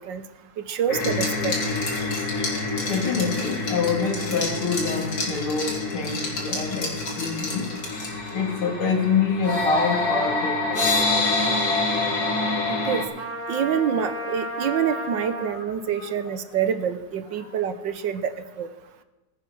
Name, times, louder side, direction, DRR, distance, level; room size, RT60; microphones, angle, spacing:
voice 1, 0.6-1.6 12.8-13.0 13.5-18.3 18.6-18.7, right 8 dB, 65° right, 12 dB, 1.4 m, -26 dB
Liquid, 0.9-8.3, left 2 dB, 65° left, 4.0 m, -33 dB
sound 1, 0.9-13.1, left 3 dB, 45° left, 2.7 m, -27 dB
voice 2, 2.8-11.0 12.2-12.4 15.5-16.2 17.4-17.5, left 5 dB, 80° left, 4 dB, 3.3 m, -27 dB
Trumpet, 13.1-15.7, right 1 dB, 35° right, 1.9 m, -33 dB
15.5 x 9.0 x 7.7 m, 1.1 s
omnidirectional pair, 2.3 m